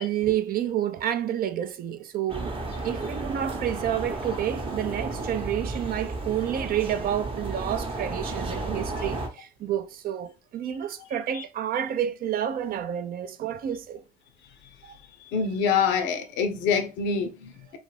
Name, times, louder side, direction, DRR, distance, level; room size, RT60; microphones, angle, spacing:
voice 1, 0.0-2.5 2.8-14.0 14.8-15.0, right 10 dB, 50° right, 0.4 m, -29 dB
sound 1, 2.3-9.3, right 2 dB, 30° right, 0.8 m, -33 dB
voice 2, 15.2-17.8, left 6 dB, 75° left, 0.6 m, -26 dB
2.5 x 2.4 x 3.1 m
hypercardioid pair, 60°, 19 cm